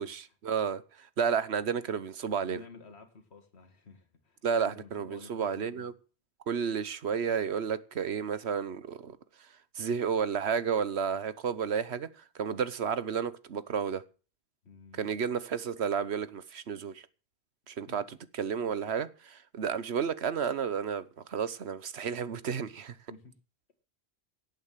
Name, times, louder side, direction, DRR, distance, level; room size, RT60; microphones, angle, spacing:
voice 1, 0.0-2.6 4.4-5.9 6.5-9.2 9.7-12.1 12.3-14.0 14.9-17.1 17.7-23.0, right 7 dB, 85° right, 1.3 m, -32 dB
voice 2, 2.4-5.9 14.6-15.1 17.9-18.0 23.1-23.3, left 4 dB, 90° left, 2.0 m, -52 dB
18.0 x 8.1 x 7.4 m
omnidirectional pair, 1.1 m